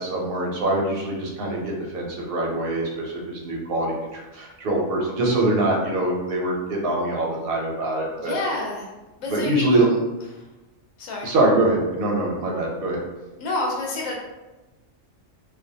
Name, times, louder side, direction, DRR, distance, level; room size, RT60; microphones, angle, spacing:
voice 1, 0.0-8.3 9.3-9.9 11.2-13.0, right 2 dB, 60° right, -2 dB, 0.6 m, -24 dB
voice 2, 8.2-8.9 9.2-10.0 10.3-10.4 11.0-11.3 13.4-14.2, left 2 dB, 85° left, -1 dB, 1.0 m, -29 dB
2.4 x 2.1 x 2.6 m, 1.1 s
omnidirectional pair, 1.3 m